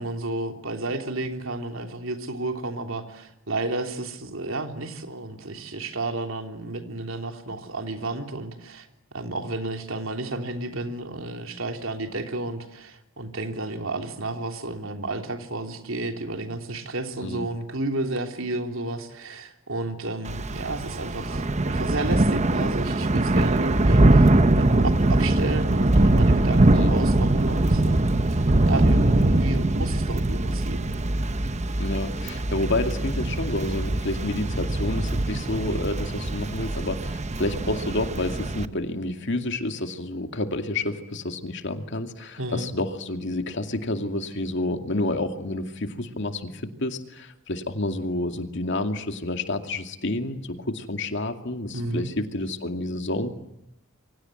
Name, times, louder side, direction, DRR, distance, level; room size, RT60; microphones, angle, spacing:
voice 1, 0.0-8.9 9.1-30.9 42.4-42.7 51.7-52.1, right 2 dB, 80° right, 5 dB, 3.4 m, -32 dB
Thunder / Rain, 20.3-38.7, right 2 dB, 35° right, 1.0 m, -22 dB
voice 2, 31.8-53.3, left 2 dB, 60° left, 6 dB, 2.4 m, -29 dB
28.0 x 24.0 x 7.9 m, 0.86 s
head